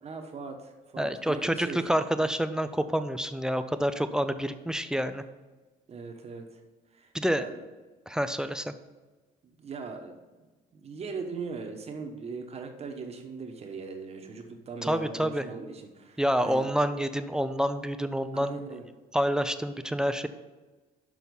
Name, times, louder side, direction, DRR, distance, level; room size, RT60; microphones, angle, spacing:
voice 1, 0.0-1.8 5.9-6.6 6.9-7.6 9.4-10.2 10.7-16.7 18.3-18.8, right 4 dB, 40° right, 5 dB, 1.1 m, -40 dB
voice 2, 1.0-5.2 7.1-7.4 8.1-8.7 14.8-15.5 16.2-18.6 19.1-20.3, equal, 5° right, 10 dB, 0.4 m, -28 dB
6.3 x 5.6 x 5.3 m, 1.2 s
cardioid pair, 110°, 17 cm